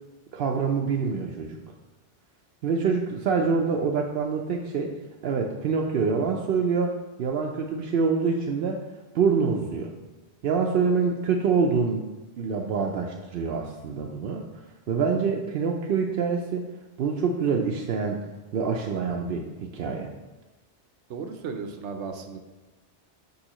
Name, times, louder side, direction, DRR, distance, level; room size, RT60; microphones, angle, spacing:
voice 1, 0.3-1.6 2.6-4.9 5.2-8.8 9.1-9.9 10.4-12.1 12.4-14.4 14.9-16.7 17.0-18.2 18.5-20.1, right 5 dB, 65° right, 1 dB, 0.7 m, -26 dB
voice 2, 21.1-22.4, right 5 dB, 90° right, 6 dB, 1.0 m, -35 dB
6.4 x 5.5 x 3.0 m, 1.2 s
omnidirectional pair, 1.1 m